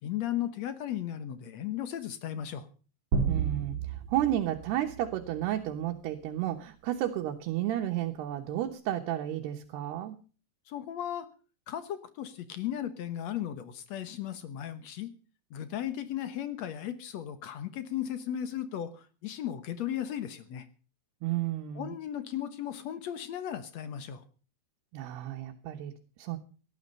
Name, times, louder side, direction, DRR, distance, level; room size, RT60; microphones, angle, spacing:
voice 1, 0.0-2.7 10.7-11.3 11.7-15.1 15.5-20.7 21.7-24.2, left 11 dB, 75° left, 11 dB, 1.5 m, -36 dB
sound 1, 3.1-5.6, right 6 dB, 40° right, 3.3 m, -32 dB
voice 2, 3.3-10.2 21.2-21.9 24.9-26.4, right 12 dB, 75° right, 2 dB, 3.2 m, -32 dB
18.0 x 12.5 x 5.4 m, 0.38 s
omnidirectional pair, 4.8 m